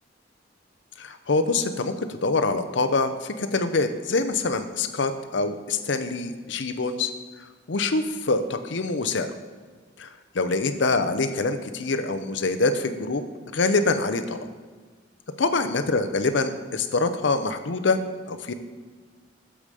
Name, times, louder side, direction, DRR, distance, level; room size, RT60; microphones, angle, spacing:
voice 1, 1.0-7.1 7.7-9.3 10.0-13.2 13.5-14.5 15.4-18.0 18.3-18.5, left 3 dB, 65° left, 9 dB, 0.6 m, -25 dB
8.7 x 5.0 x 6.7 m, 1.4 s
head